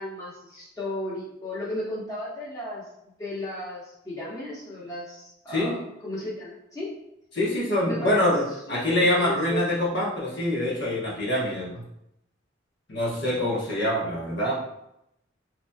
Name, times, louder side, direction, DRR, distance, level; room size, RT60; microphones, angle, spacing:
voice 1, 0.0-2.9 3.2-5.8 6.0-6.9 7.9-8.1 8.7-9.7, left 1 dB, 20° left, -8 dB, 1.1 m, -34 dB
voice 2, 7.3-11.8 12.9-14.5, left 1 dB, 60° left, -6 dB, 1.1 m, -25 dB
3.9 x 3.1 x 2.2 m, 0.81 s
head